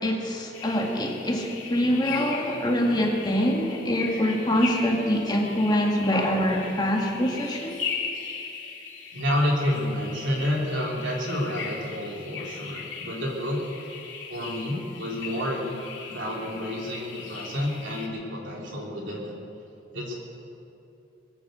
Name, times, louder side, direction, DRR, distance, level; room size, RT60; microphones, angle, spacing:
voice 1, 0.0-7.8, equal, 25° left, 0 dB, 1.9 m, -25 dB
sound 1, 0.5-18.1, left 5 dB, 70° left, 2.8 m, -38 dB
voice 2, 9.1-13.6 14.3-15.7 16.1-19.3 19.9-20.2, left 1 dB, 75° right, -2 dB, 3.7 m, -29 dB
21.0 x 8.6 x 8.0 m, 2.7 s
head